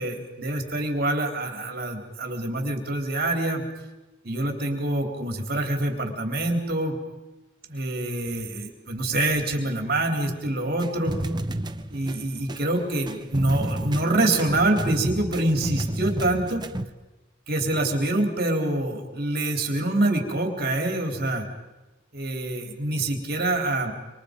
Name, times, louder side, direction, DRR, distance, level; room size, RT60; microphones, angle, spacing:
voice 1, 0.0-3.6 4.2-7.0 7.7-11.1 11.9-16.6 17.5-21.5 22.1-23.9, right 1 dB, 50° right, 4 dB, 3.6 m, -26 dB
sound 1, 10.8-16.9, right 1 dB, 20° right, 0.9 m, -31 dB
27.0 x 25.5 x 5.2 m, 1.1 s
head